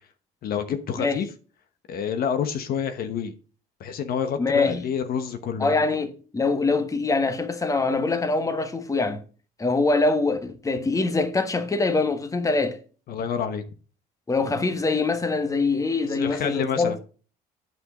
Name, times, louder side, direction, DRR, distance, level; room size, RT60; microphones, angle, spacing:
voice 1, 0.4-1.3 1.9-3.3 3.8-5.7 13.1-13.6 16.1-17.0, left 7 dB, 60° left, 1.1 m, -28 dB
voice 2, 4.4-4.8 5.6-9.2 9.6-12.8 14.3-16.9, left 3 dB, 20° left, 1.4 m, -24 dB
8.8 x 6.2 x 4.9 m
cardioid pair, 110°, 17 cm